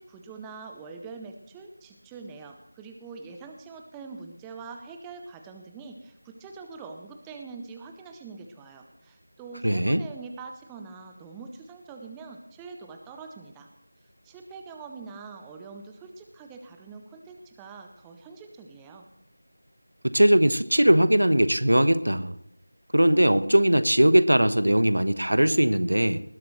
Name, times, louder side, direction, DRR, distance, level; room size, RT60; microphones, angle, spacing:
voice 1, 0.0-13.7 14.2-19.1, right 4 dB, 5° right, 4 dB, 0.6 m, -44 dB
voice 2, 9.6-10.0 20.0-22.3 22.9-26.2, right 1 dB, 75° right, 13 dB, 1.0 m, -20 dB
20.0 x 11.5 x 3.2 m, 0.78 s
figure-of-eight pair, 170°, 0 cm